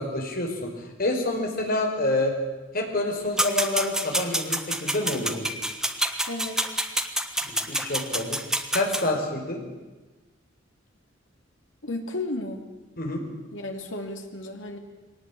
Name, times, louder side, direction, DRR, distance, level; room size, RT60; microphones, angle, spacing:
voice 1, 0.0-2.3 2.7-5.5 7.5-8.4 8.7-9.6 13.0-13.2, left 2 dB, 50° left, 2 dB, 5.1 m, -27 dB
sound 1, 3.4-9.0, right 1 dB, 5° right, 1.4 m, -27 dB
voice 2, 6.3-6.8 11.8-12.6 13.5-14.8, left 2 dB, 70° left, 3 dB, 3.0 m, -33 dB
22.5 x 18.5 x 8.7 m, 1.2 s
head